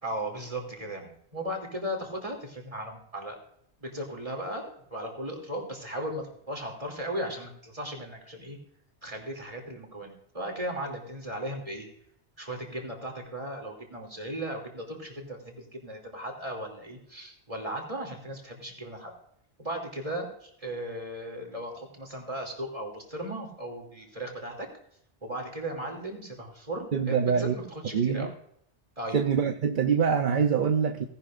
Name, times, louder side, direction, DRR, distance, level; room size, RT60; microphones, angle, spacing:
voice 1, 0.0-3.4 3.8-8.6 9.0-11.9 12.4-19.1 19.6-24.7 25.2-28.3 29.0-29.2, right 1 dB, 30° right, 1 dB, 3.1 m, -36 dB
voice 2, 26.9-27.6 27.9-28.3 29.1-31.0, right 7 dB, 50° right, 6 dB, 0.9 m, -24 dB
18.0 x 11.5 x 2.6 m, 0.67 s
omnidirectional pair, 1.1 m